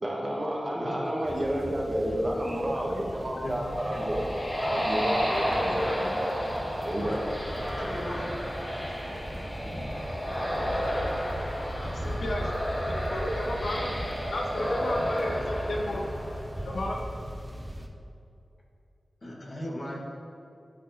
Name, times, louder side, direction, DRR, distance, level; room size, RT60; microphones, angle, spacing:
voice 1, 0.0-6.3 6.8-7.2, equal, 35° right, -2 dB, 1.2 m, -30 dB
sound 1, 1.2-17.9, equal, 15° right, 0.5 m, -38 dB
sound 2, 3.3-16.8, equal, 25° left, 1.5 m, -32 dB
voice 2, 3.9-4.3 5.6-5.8 6.9-7.2 7.7-8.3 11.5-12.1 14.8-14.9 19.2-20.0, equal, 50° left, -3 dB, 1.3 m, -38 dB
voice 3, 11.8-12.6 12.9-13.9 14.3-16.1 16.6-17.0 17.3-17.4, left 1 dB, 75° left, 0 dB, 0.7 m, -33 dB
11.5 x 4.0 x 2.7 m, 2.6 s
wide cardioid pair, 75°, 0 cm